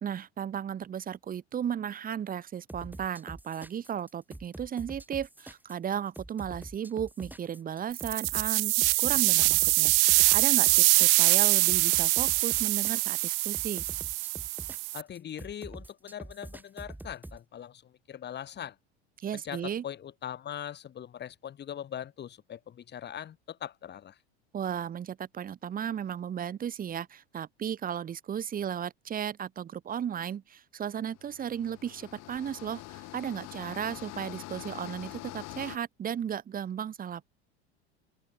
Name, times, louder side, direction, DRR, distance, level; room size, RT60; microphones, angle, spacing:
voice 1, 0.0-8.7 9.0-13.8 19.2-19.8 24.5-37.2, right 9 dB, 25° right, 1.1 m, -35 dB
sound 1, 2.7-17.4, right 1 dB, 5° right, 5.1 m, -45 dB
sound 2, 7.9-15.0, right 28 dB, 60° right, 0.4 m, -24 dB
voice 2, 14.9-18.8 19.3-24.2, left 9 dB, 30° left, 1.8 m, -41 dB
sound 3, 31.1-35.8, left 19 dB, 50° left, 5.4 m, -44 dB
open air
hypercardioid pair, 85°, 33 cm